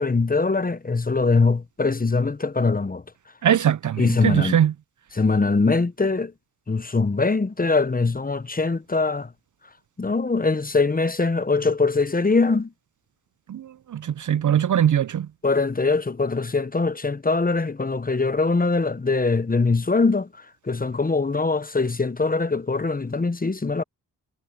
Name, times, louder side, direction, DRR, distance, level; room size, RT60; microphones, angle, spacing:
voice 1, 0.0-3.0 4.0-4.6 5.1-6.3 6.7-9.3 10.0-12.7 15.4-20.3 20.7-23.8, left 3 dB, 20° left, 0.9 m, -22 dB
voice 2, 3.4-4.7 13.5-15.3, right 9 dB, 50° right, 0.5 m, -21 dB
supercardioid pair, 45°, 40 cm